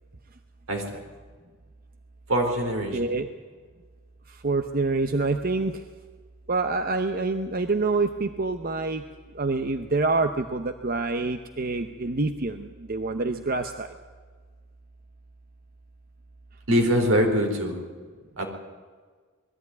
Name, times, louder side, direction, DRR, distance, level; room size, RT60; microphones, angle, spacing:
voice 1, 2.3-3.0 16.7-17.8 18.4-18.5, equal, 80° right, 3 dB, 4.1 m, -23 dB
voice 2, 2.9-3.3 4.3-5.8 6.5-9.0 9.3-13.9, right 3 dB, 45° right, 8 dB, 0.8 m, -26 dB
20.5 x 14.0 x 9.5 m, 1.5 s
head